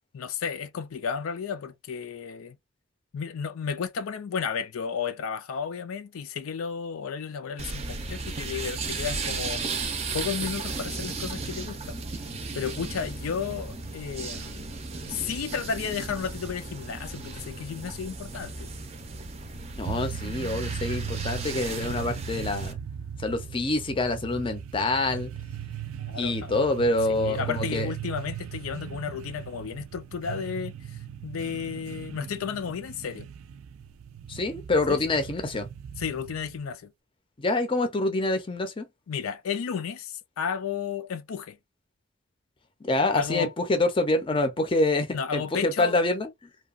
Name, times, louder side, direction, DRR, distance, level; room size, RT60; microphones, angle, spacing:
voice 1, 0.1-2.6 3.1-9.6 10.1-12.0 12.5-14.7 15.1-18.7 26.0-26.5 27.1-33.3 34.9-35.0 36.0-36.9 39.1-41.6 43.1-43.5 45.1-46.0, left 6 dB, 80° left, 0.4 m, -33 dB
sound 1, 7.6-22.7, right 4 dB, 30° right, 0.5 m, -35 dB
voice 2, 19.8-22.7 23.2-25.3 26.2-27.9 34.3-35.7 37.4-38.8 42.8-46.3, left 2 dB, 25° left, 0.5 m, -26 dB
sound 2, 19.9-36.6, right 8 dB, 85° right, 0.4 m, -38 dB
2.8 x 2.3 x 2.4 m
head